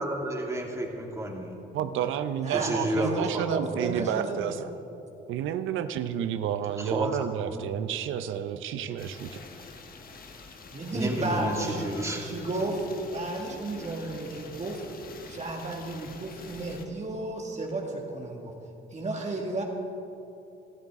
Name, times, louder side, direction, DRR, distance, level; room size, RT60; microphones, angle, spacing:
voice 1, 0.0-1.5 2.5-4.1 6.8-7.7 10.9-12.3 14.0-14.1, right 1 dB, 15° right, 0 dB, 2.2 m, -31 dB
voice 2, 1.7-4.7 5.3-9.4, right 9 dB, 85° right, 11 dB, 0.6 m, -30 dB
voice 3, 2.4-4.6 10.7-11.9 12.2-14.8 15.3-18.5 18.9-19.6, right 2 dB, 35° right, 0 dB, 1.8 m, -33 dB
sound 1, 9.0-16.9, left 4 dB, 45° left, 1.3 m, -46 dB
17.5 x 12.5 x 3.6 m, 3.0 s
cardioid pair, 90°, 20 cm